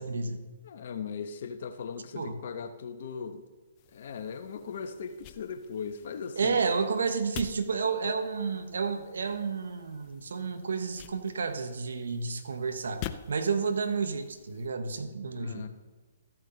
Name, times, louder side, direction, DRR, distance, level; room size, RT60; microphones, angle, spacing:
voice 1, 0.0-0.5 2.1-2.4 6.4-15.7, right 5 dB, 70° right, 8 dB, 1.4 m, -31 dB
voice 2, 0.6-3.4 3.9-6.6 13.1-13.2 15.3-15.7, left 6 dB, 55° left, 9 dB, 1.0 m, -38 dB
sound 1, 3.8-14.7, left 11 dB, 35° left, 0.6 m, -48 dB
13.5 x 9.1 x 4.1 m, 1.3 s
hypercardioid pair, 135°, 0 cm